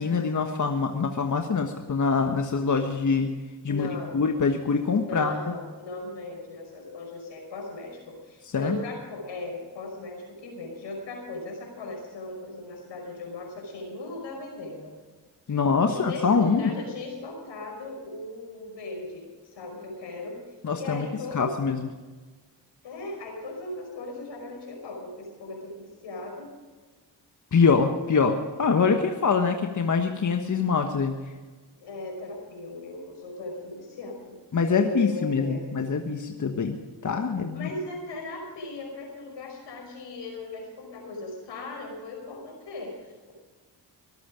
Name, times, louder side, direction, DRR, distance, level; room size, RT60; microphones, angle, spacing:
voice 1, 0.0-3.3 3.6-5.4 8.5-8.8 15.5-16.7 20.6-21.1 21.3-21.9 27.5-31.2 34.5-36.8 37.0-37.7, left 5 dB, 45° left, 5 dB, 1.4 m, -24 dB
voice 2, 3.7-4.2 4.9-14.9 15.9-20.4 20.7-21.5 22.8-26.5 31.8-34.4 34.7-35.6 37.5-43.3, left 2 dB, 75° left, 1 dB, 5.2 m, -38 dB
23.0 x 8.6 x 5.1 m, 1.4 s
supercardioid pair, 50°, 43 cm